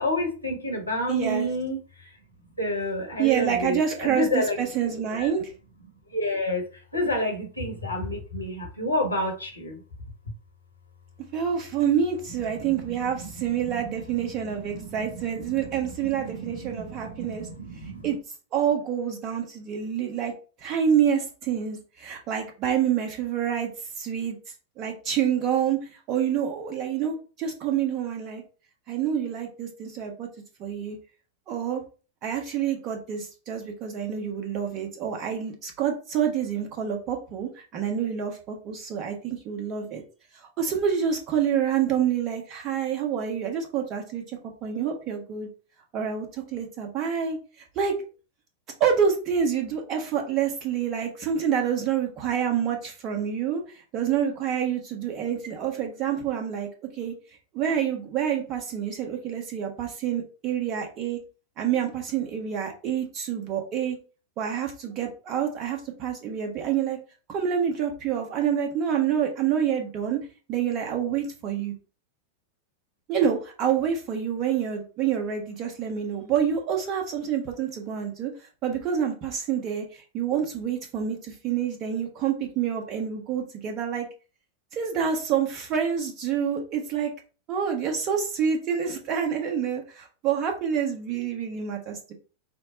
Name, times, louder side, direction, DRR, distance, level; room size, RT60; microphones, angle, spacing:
voice 1, 0.0-1.8 2.6-4.6 5.2-5.3 6.1-6.6 6.9-9.7 16.8-16.9, left 1 dB, 85° left, 1 dB, 1.4 m, -28 dB
voice 2, 1.1-1.5 3.2-5.5 11.3-17.5 18.0-18.2 18.5-20.3 20.6-23.7 24.0-24.3 24.8-25.8 26.1-28.4 28.9-30.3 30.6-31.0 31.5-31.8 32.2-40.0 40.6-44.2 44.6-45.5 45.9-47.4 47.7-47.9 48.8-53.6 53.9-56.7 57.0-57.1 57.5-61.2 61.6-64.0 64.4-67.0 67.3-70.2 70.5-71.7 73.1-78.3 78.6-84.1 84.7-87.1 87.5-92.1, right 8 dB, 35° right, 2 dB, 1.2 m, -27 dB
5.8 x 2.2 x 3.8 m, 0.36 s
figure-of-eight pair, 90°, 0 cm